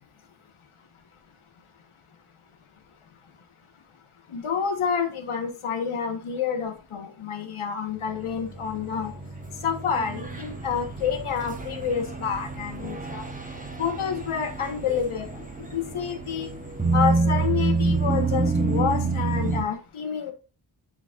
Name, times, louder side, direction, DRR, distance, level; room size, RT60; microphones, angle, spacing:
voice 1, 4.3-9.1 9.6-13.2 13.8-15.5 15.7-16.5 16.9-20.3, left 7 dB, 90° left, 5 dB, 1.3 m, -28 dB
sound 1, 8.1-19.6, right 3 dB, 15° right, 1.1 m, -28 dB
9.8 x 4.1 x 2.4 m, 0.32 s
wide cardioid pair, 115°, 48 cm